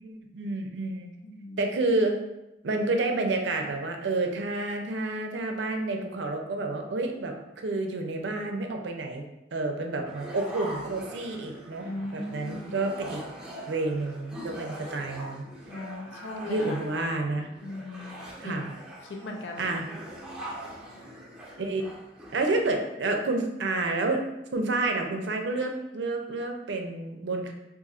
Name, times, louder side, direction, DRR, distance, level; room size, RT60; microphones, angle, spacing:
voice 1, 0.0-1.1 1.6-2.2 2.6-11.9 12.1-13.2 13.7-15.4 16.4-17.5 18.4-18.7 19.6-19.9 21.6-21.8 22.3-24.2 24.5-27.5, right 2 dB, 70° right, 4 dB, 0.5 m, -29 dB
voice 2, 1.2-1.6 11.8-12.8 15.7-16.8 17.6-18.1 18.4-18.6 19.2-19.6, left 2 dB, 80° left, 1 dB, 0.6 m, -37 dB
sound 1, 10.0-22.9, right 1 dB, 5° right, 0.7 m, -42 dB
2.6 x 2.5 x 4.1 m, 0.94 s
head